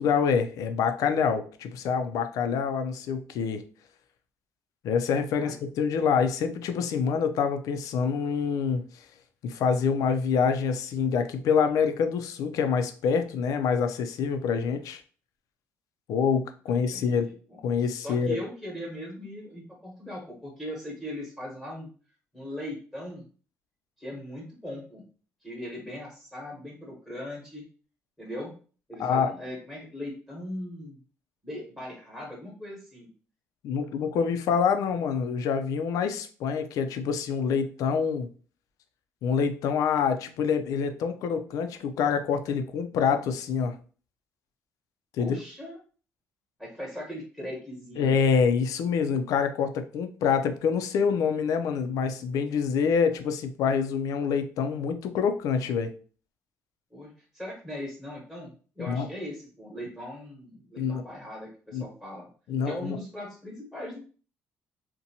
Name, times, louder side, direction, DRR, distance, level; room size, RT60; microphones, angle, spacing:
voice 1, 0.0-3.6 4.8-8.8 9.4-15.0 16.1-17.3 17.6-18.4 29.0-29.3 33.6-38.3 39.2-43.8 45.2-45.4 48.0-55.9 58.8-59.1 60.8-61.0 61.7-61.9 62.5-63.0, left 6 dB, 70° left, 8 dB, 0.4 m, -26 dB
voice 2, 16.7-21.9 22.3-23.2 24.0-25.0 25.4-27.6 28.2-28.5 28.9-31.0 31.4-33.1 45.2-45.8 46.6-48.1 56.9-62.3 62.6-64.0, equal, ahead, -4 dB, 1.0 m, -39 dB
2.6 x 2.1 x 2.7 m, 0.40 s
cardioid pair, 85°, 6 cm